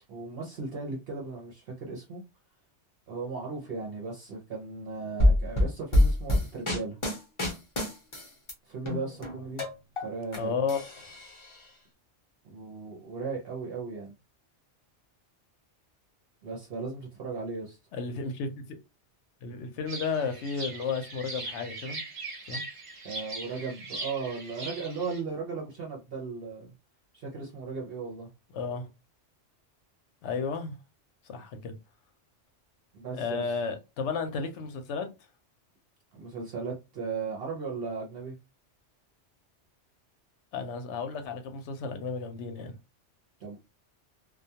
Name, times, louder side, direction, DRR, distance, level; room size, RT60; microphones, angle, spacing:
voice 1, 0.1-2.2 3.1-7.0 8.7-9.6 10.0-10.6 12.4-14.1 16.4-17.8 23.0-26.7 27.1-28.3 32.9-33.4 36.1-38.3 43.4-43.6, right 4 dB, 60° right, 0.9 m, -36 dB
sound 1, 5.2-8.5 8.9-10.4 10.7-11.6, left 1 dB, 30° left, 0.7 m, -26 dB
voice 2, 10.4-10.8 17.9-18.8 19.4-22.0 22.5-22.6 28.5-28.9 30.2-30.8 31.2-31.7 33.1-35.1 40.5-42.8, left 5 dB, 75° left, 0.9 m, -33 dB
sound 2, 19.9-25.2, right 2 dB, 40° right, 0.5 m, -40 dB
2.3 x 2.2 x 2.7 m
omnidirectional pair, 1.2 m